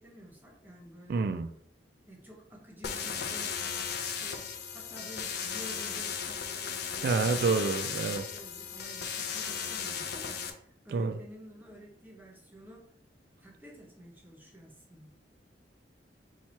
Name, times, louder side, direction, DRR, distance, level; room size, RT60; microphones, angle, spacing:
voice 1, 0.0-1.3 2.1-3.6 4.0-12.9 13.4-15.1, right 1 dB, 10° right, -1 dB, 0.7 m, -51 dB
voice 2, 1.1-1.5 7.0-8.3 10.9-11.2, right 4 dB, 60° right, 9 dB, 0.3 m, -28 dB
sound 1, 2.8-10.5, left 7 dB, 60° left, 0.5 m, -36 dB
4.4 x 2.3 x 4.2 m, 0.66 s
head